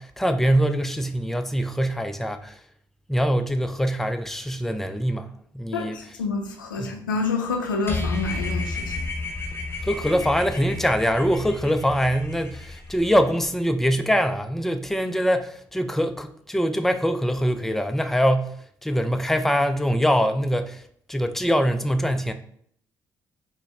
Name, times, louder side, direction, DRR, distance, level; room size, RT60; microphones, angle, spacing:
voice 1, 0.0-2.6 3.1-5.3 5.5-6.0 6.8-6.9 9.8-18.5 18.8-20.8 21.1-22.3, equal, 5° left, 0.4 m, -23 dB
voice 2, 5.7-8.9, left 4 dB, 90° left, 0.4 m, -28 dB
sound 1, 7.9-13.5, left 2 dB, 25° left, 0.9 m, -32 dB
4.0 x 2.1 x 3.4 m
hypercardioid pair, 40°, 10 cm